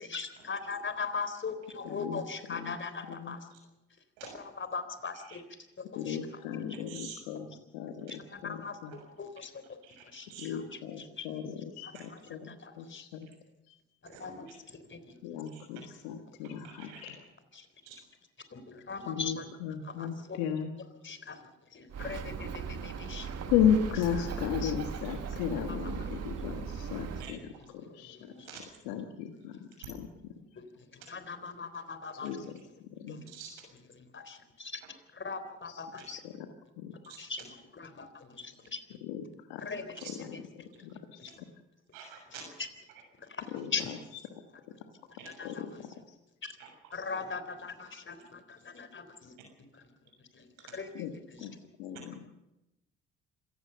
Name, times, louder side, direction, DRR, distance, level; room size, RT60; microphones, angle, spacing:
voice 1, 0.0-3.4 4.3-5.4 5.8-6.2 8.3-9.5 10.1-10.6 11.0-11.3 12.1-12.2 12.5-13.0 14.2-14.5 14.9-15.0 17.5-17.6 18.5-19.5 19.8-20.4 21.0-21.4 21.7-23.3 24.6-24.7 28.1-28.5 30.6-30.7 31.1-32.3 33.1-33.2 34.0-34.8 35.1-36.2 37.2-38.8 39.6-40.0 40.3-40.4 41.2-41.3 42.3-42.7 43.4-43.5 43.7-43.9 45.4-45.8 46.4-46.5 46.9-49.3 50.4-50.9 51.3-51.5, left 5 dB, 40° left, 10 dB, 3.8 m, -40 dB
voice 2, 1.8-2.2 2.5-2.8 3.1-3.4 5.9-8.9 10.4-13.3 13.7-13.8 15.2-17.2 19.1-20.7 23.5-27.4 27.7-28.2 28.8-29.5 29.9-30.1 32.2-32.5 32.8-33.2 35.6-35.8 36.2-36.5 36.8-36.9 39.0-39.2 39.5-39.7 40.0-40.3 40.8-41.3 43.5-44.0 45.4-45.9 50.9-51.1 51.4-51.5 51.8-52.2, left 8 dB, 85° left, 6 dB, 1.6 m, -35 dB
voice 3, 9.8-10.5 11.9-12.0 14.1-14.3 15.5-15.6 16.6-17.0 17.8-18.0 27.2-27.3 28.5-28.6 33.3-33.5 37.0-37.2 40.0-40.1 41.9-42.4 45.2-45.3 46.6-46.7, right 8 dB, 85° right, 2 dB, 6.7 m, -47 dB
Bird, 21.9-27.3, right 6 dB, 55° right, 2.0 m, -38 dB
26.5 x 16.0 x 6.9 m, 0.92 s
hypercardioid pair, 55°, 31 cm